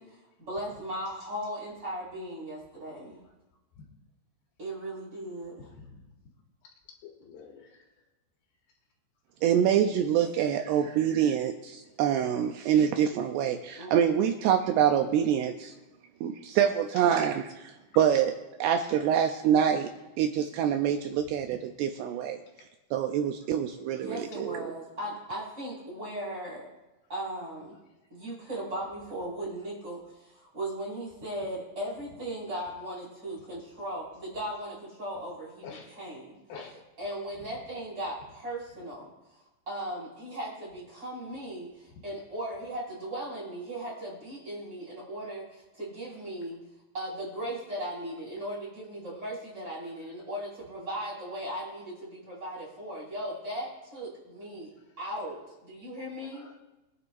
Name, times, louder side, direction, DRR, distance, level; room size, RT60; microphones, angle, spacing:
voice 1, 0.0-3.2 4.6-5.7 13.8-14.4 24.0-26.7 27.1-27.8 28.1-36.4 37.0-39.1 39.7-46.6 46.9-54.7 55.0-56.5, right 1 dB, 20° right, -6 dB, 5.1 m, -37 dB
voice 2, 7.0-7.7 10.2-10.3 35.6-35.9 36.5-36.8 56.2-56.6, left 6 dB, 80° left, -1 dB, 4.2 m, -46 dB
voice 3, 9.4-15.7 16.2-19.9 20.2-22.4 22.9-24.7, right 9 dB, 80° right, 5 dB, 2.5 m, -26 dB
23.5 x 9.7 x 2.6 m, 1.0 s
omnidirectional pair, 5.1 m